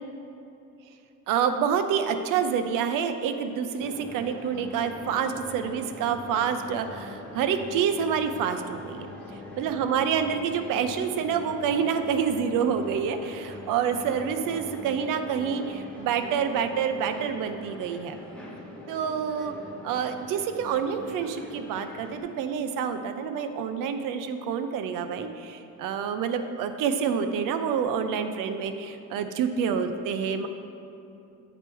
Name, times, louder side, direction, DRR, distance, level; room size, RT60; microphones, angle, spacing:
voice 1, 1.3-9.1 9.6-18.2 18.9-19.5 19.8-30.5, right 7 dB, 90° right, 8 dB, 0.5 m, -27 dB
sound 1, 3.8-22.2, left 1 dB, 5° left, 0.4 m, -43 dB
7.9 x 4.5 x 3.0 m, 2.8 s
cardioid pair, 175°, 32 cm